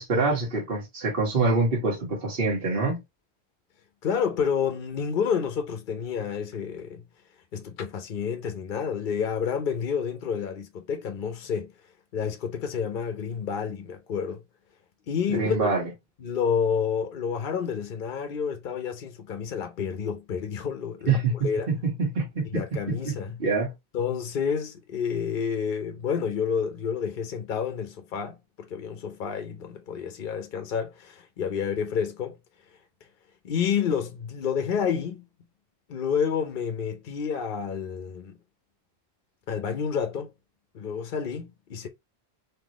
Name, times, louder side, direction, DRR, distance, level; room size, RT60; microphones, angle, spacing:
voice 1, 0.0-3.0 15.3-15.8 21.1-21.3 21.7-22.6 22.9-23.7, right 3 dB, 60° right, 1.6 m, -25 dB
voice 2, 4.0-7.0 7.5-11.7 12.1-14.4 15.1-15.7 16.2-21.7 22.5-23.4 23.9-32.4 33.4-35.2 35.9-38.3 39.5-40.3 40.7-41.9, left 7 dB, 55° left, 0.8 m, -29 dB
3.8 x 2.9 x 2.9 m
omnidirectional pair, 1.1 m